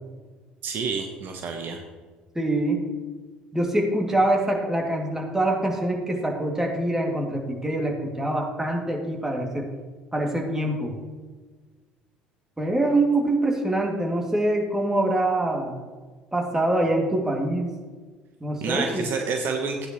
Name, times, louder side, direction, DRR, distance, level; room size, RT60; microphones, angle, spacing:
voice 1, 0.6-1.8 18.6-19.9, right 5 dB, 50° right, 4 dB, 1.2 m, -28 dB
voice 2, 2.3-2.8 3.5-9.7 10.1-10.9 12.6-15.7 16.3-17.7 18.4-19.1, right 1 dB, 10° right, 0 dB, 2.5 m, -24 dB
15.0 x 9.7 x 3.2 m, 1.4 s
figure-of-eight pair, 60°, 4 cm